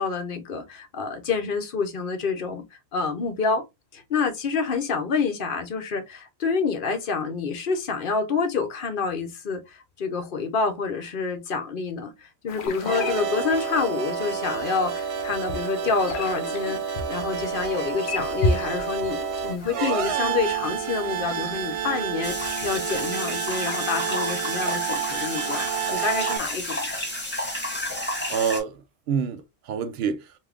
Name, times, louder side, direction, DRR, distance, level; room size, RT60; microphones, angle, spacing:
voice 1, 0.0-2.6 2.9-3.6 3.9-16.8 17.1-26.8, left 5 dB, 60° left, 0.8 m, -28 dB
sound 1, 12.5-23.1, left 2 dB, 90° left, 0.9 m, -35 dB
sound 2, 12.7-26.4, right 7 dB, 50° right, 0.4 m, -29 dB
sound 3, 22.2-28.6, left 1 dB, 10° left, 0.8 m, -31 dB
voice 2, 27.7-30.3, right 7 dB, 80° right, 0.8 m, -29 dB
3.5 x 2.7 x 2.3 m
omnidirectional pair, 1.0 m